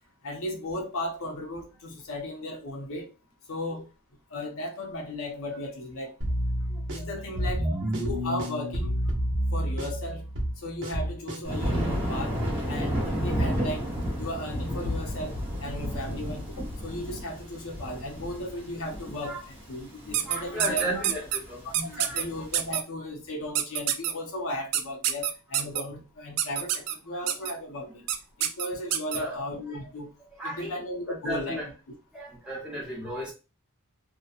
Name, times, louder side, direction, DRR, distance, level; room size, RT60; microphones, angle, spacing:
voice 1, 0.2-3.1 3.5-3.9 4.3-6.2 6.9-7.7 7.9-9.0 9.5-10.3 10.6-13.9 14.2-20.9 21.6-28.0 28.4-30.1 30.4-31.6, left 1 dB, 65° left, 0.7 m, -36 dB
sound 1, 6.2-11.9, equal, 60° right, 0.8 m, -29 dB
voice 2, 6.7-7.1 7.6-7.7 19.2-19.4 20.2-21.6 21.9-22.2 27.1-27.2 29.1-29.5 30.4-30.8 31.2-31.7 32.1-33.3, right 1 dB, 5° right, 0.7 m, -34 dB
Thunder, 11.4-22.6, equal, 25° right, 1.0 m, -32 dB
sound 2, 20.1-21.4 21.7-22.2 22.5-22.8 23.5-24.1 24.7-25.8 26.4-26.9 27.3-27.5 28.1-28.2 28.4-29.2, right 10 dB, 85° right, 0.3 m, -26 dB
2.8 x 2.1 x 2.4 m
head